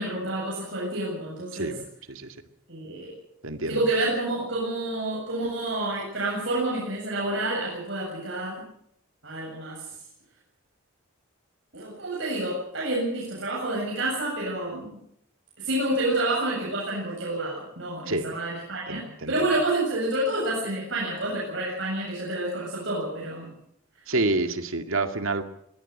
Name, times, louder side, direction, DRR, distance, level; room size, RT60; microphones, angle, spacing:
voice 1, 0.0-1.7 2.7-3.1 3.7-8.6 9.2-9.8 11.7-14.9 15.6-23.5, right 1 dB, 65° right, -4 dB, 7.9 m, -29 dB
voice 2, 1.5-2.4 3.4-3.8 18.1-18.4 18.9-19.5 24.1-25.4, right 2 dB, 80° right, 8 dB, 2.1 m, -28 dB
22.5 x 17.5 x 8.0 m, 0.73 s
head